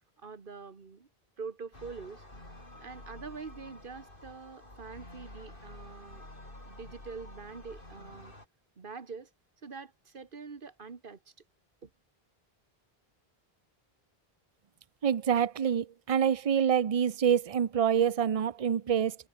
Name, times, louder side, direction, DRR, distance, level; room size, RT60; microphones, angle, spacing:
voice 1, 0.2-1.1 1.4-2.2 2.8-6.2 6.6-8.3 8.8-9.3 9.6-11.3 11.8-11.9, right 5 dB, 55° right, 1.7 m, -45 dB
sound 1, 1.7-8.5, left 1 dB, 60° left, 5.9 m, -49 dB
voice 2, 15.0-19.2, right 8 dB, 40° right, 0.7 m, -26 dB
omnidirectional pair, 1.0 m